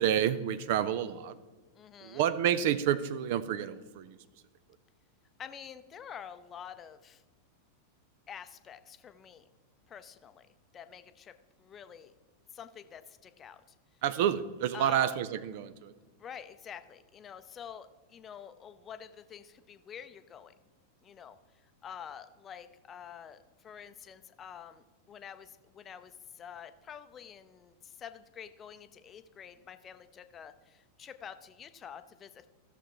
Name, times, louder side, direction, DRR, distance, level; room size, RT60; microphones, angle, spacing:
voice 1, 0.0-1.4 2.0-4.2 14.0-15.9, right 10 dB, 50° right, 14 dB, 0.5 m, -29 dB
voice 2, 1.7-2.2 5.4-7.2 8.3-9.5 9.9-10.5 10.7-12.1 12.5-13.6 14.7-15.2 16.2-20.5 21.0-21.4 21.6-32.5, left 8 dB, 25° left, 11 dB, 0.6 m, -48 dB
15.0 x 6.8 x 3.1 m, 1.3 s
figure-of-eight pair, 90°, 0 cm